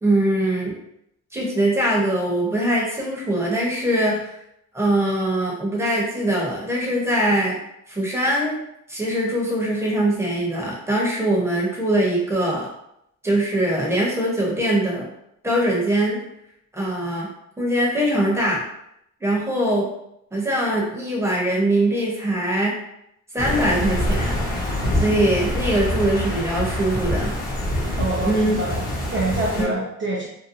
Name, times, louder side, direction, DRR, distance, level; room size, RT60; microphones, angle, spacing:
voice 1, 0.0-0.7 1.3-4.3 4.7-7.6 7.9-8.6 8.9-12.7 13.2-15.1 15.4-16.2 16.7-17.3 17.6-18.6 19.2-19.9 20.3-22.8 23.3-24.4 24.9-27.3 28.2-28.5 29.6-29.7, right 1 dB, 10° right, -3 dB, 1.0 m, -22 dB
sound 1, 23.4-29.7, left 1 dB, 30° left, 0.9 m, -25 dB
voice 2, 28.0-30.3, right 2 dB, 40° right, -4 dB, 0.6 m, -26 dB
2.8 x 2.2 x 2.6 m, 0.77 s
cardioid pair, 90°, 30 cm